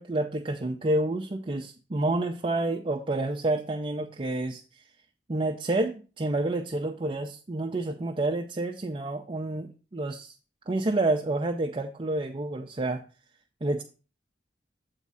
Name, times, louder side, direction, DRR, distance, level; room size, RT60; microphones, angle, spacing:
voice 1, 0.0-4.8 5.3-10.3 10.7-13.0 13.6-13.8, right 2 dB, 30° right, 2 dB, 0.5 m, -29 dB
8.3 x 3.6 x 5.4 m, 0.35 s
head